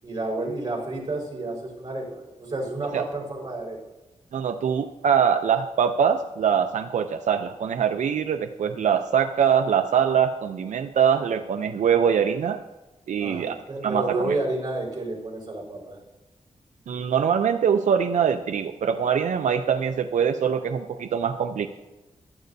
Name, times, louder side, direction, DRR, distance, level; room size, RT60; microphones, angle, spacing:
voice 1, 0.0-3.8 13.2-16.0, right 2 dB, 35° right, -2 dB, 4.7 m, -30 dB
voice 2, 4.3-12.6 13.1-13.6 13.8-14.3 16.9-21.7, right 7 dB, 85° right, 7 dB, 0.5 m, -23 dB
15.0 x 12.5 x 2.7 m, 1.1 s
wide cardioid pair, 130°, 12 cm